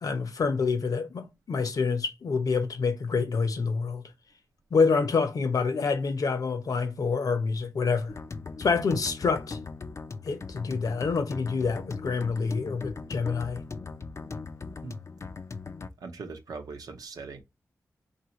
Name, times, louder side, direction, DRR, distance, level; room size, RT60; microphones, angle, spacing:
voice 1, 0.0-4.0 4.7-8.1 8.6-9.6 10.2-13.6, left 4 dB, 75° left, 0.9 m, -27 dB
sound 1, 8.1-15.9, left 4 dB, 50° left, 0.5 m, -39 dB
voice 2, 16.0-17.4, right 4 dB, 85° right, 0.8 m, -40 dB
4.6 x 2.9 x 2.9 m
cardioid pair, 60°, 6 cm